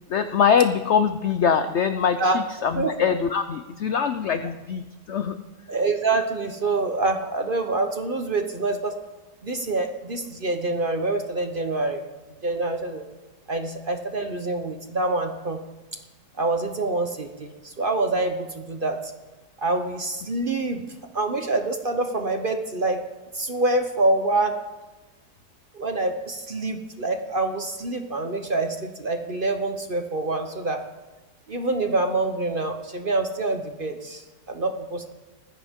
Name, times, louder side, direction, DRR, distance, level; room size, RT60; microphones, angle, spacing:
voice 1, 0.1-5.4, left 7 dB, 75° left, 9 dB, 0.6 m, -23 dB
voice 2, 5.7-9.0 9.4-12.0 12.4-13.0 13.5-15.6 16.4-19.1 19.6-20.8 21.1-23.0 23.3-24.6 25.7-30.8 31.5-35.1, right 2 dB, 40° right, 5 dB, 0.9 m, -26 dB
19.5 x 15.0 x 3.7 m, 1.1 s
omnidirectional pair, 1.9 m